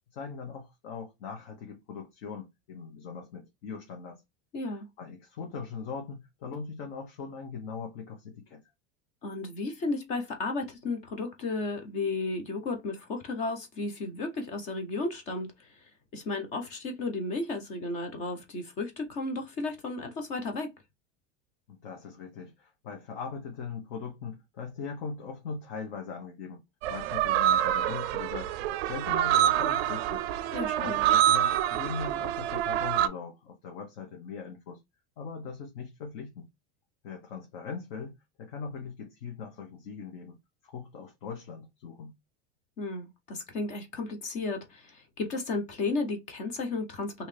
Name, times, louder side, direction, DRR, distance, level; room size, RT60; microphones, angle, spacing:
voice 1, 0.1-4.2 5.0-8.6 21.7-26.6 26.9-30.2 30.8-34.8 35.2-36.5 37.0-40.4 40.6-42.1, left 5 dB, 55° left, 1.0 m, -40 dB
voice 2, 4.5-4.9 9.2-15.9 16.1-20.7 30.5-31.0 42.8-47.3, left 3 dB, 20° left, 0.4 m, -33 dB
sound 1, 26.8-33.1, right 11 dB, 60° right, 0.5 m, -26 dB
3.4 x 2.8 x 3.2 m
supercardioid pair, 180°, 34 cm